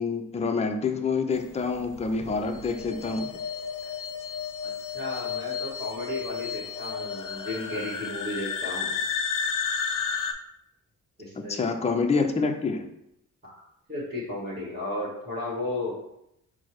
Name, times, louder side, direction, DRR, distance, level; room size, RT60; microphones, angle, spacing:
voice 1, 0.0-3.3 11.4-12.9, left 4 dB, 20° left, 5 dB, 0.4 m, -27 dB
sound 1, 1.8-10.3, left 6 dB, 65° left, 0.5 m, -32 dB
voice 2, 4.6-8.9 11.2-11.6 13.4-13.6 13.9-15.9, left 1 dB, 30° right, -7 dB, 1.4 m, -34 dB
4.4 x 2.1 x 4.5 m, 0.80 s
cardioid pair, 85°, 33 cm